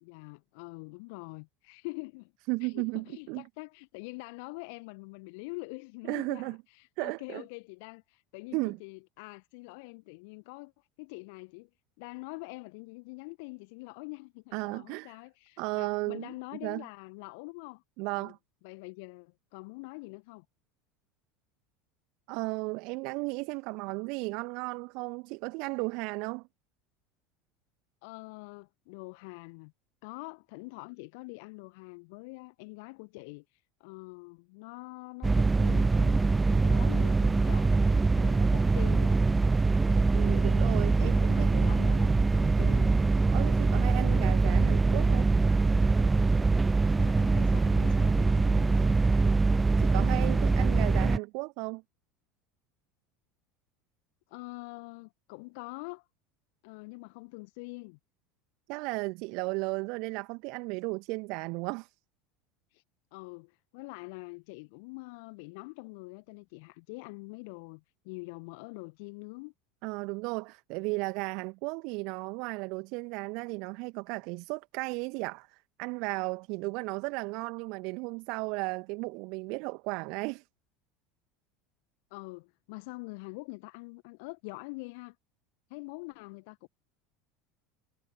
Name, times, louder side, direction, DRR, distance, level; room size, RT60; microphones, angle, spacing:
voice 1, 0.0-2.3 2.6-11.7 12.0-17.8 18.1-18.3 18.6-20.4 28.0-29.7 30.0-39.2 40.3-40.5 41.0-42.9 47.0-48.9 54.3-56.1 56.6-58.0 62.7-62.8 63.1-69.5 82.1-85.2 85.7-86.7, left 29 dB, 55° left, 1.4 m, -45 dB
voice 2, 2.5-3.4 6.1-6.6 7.0-7.4 8.5-8.8 14.5-15.2 15.6-16.3 16.6-16.8 18.0-18.4 22.3-26.5 40.1-41.7 43.3-45.3 49.8-51.8 58.7-61.9 69.8-80.4, right 28 dB, 55° right, 1.9 m, -35 dB
sound 1, 35.2-51.2, right 3 dB, 15° right, 0.7 m, -24 dB
figure-of-eight pair, 75°, 0 cm